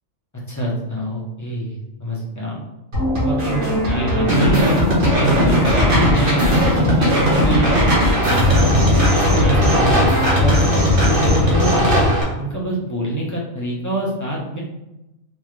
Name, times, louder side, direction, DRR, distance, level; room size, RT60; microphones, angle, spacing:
voice 1, 0.3-2.6 3.2-3.7 3.9-4.7 5.2-7.7 8.2-12.0 12.4-14.6, right 1 dB, 20° left, -4 dB, 0.6 m, -25 dB
sound 1, 2.9-10.3, equal, 85° right, 1.9 m, -22 dB
sound 2, 4.3-12.2, equal, 45° right, 1.0 m, -17 dB
3.8 x 2.5 x 3.1 m, 0.93 s
omnidirectional pair, 1.4 m